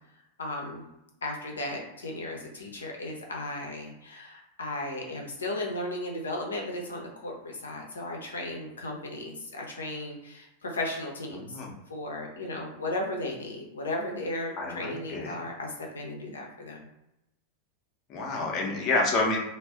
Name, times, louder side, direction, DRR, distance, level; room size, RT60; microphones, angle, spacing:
voice 1, 0.4-0.8 1.2-11.6 11.9-16.8, left 1 dB, 70° left, 1 dB, 0.7 m, -35 dB
voice 2, 11.3-11.7 14.6-15.4 18.1-19.4, left 3 dB, 35° left, -1 dB, 0.8 m, -28 dB
2.4 x 2.2 x 3.5 m, 0.88 s
figure-of-eight pair, 90°, 0 cm